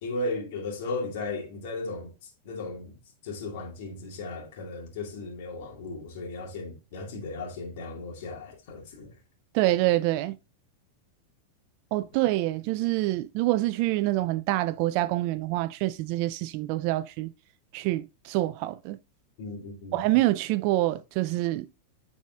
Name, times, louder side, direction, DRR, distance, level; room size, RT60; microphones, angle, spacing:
voice 1, 0.0-3.0 3.2-9.1 19.4-20.0, left 2 dB, 65° left, 2.3 m, -36 dB
voice 2, 9.5-10.4 11.9-17.3 17.7-19.0 19.9-21.7, right 17 dB, 55° right, 0.3 m, -26 dB
9.1 x 4.8 x 2.5 m
hypercardioid pair, 110°, 0 cm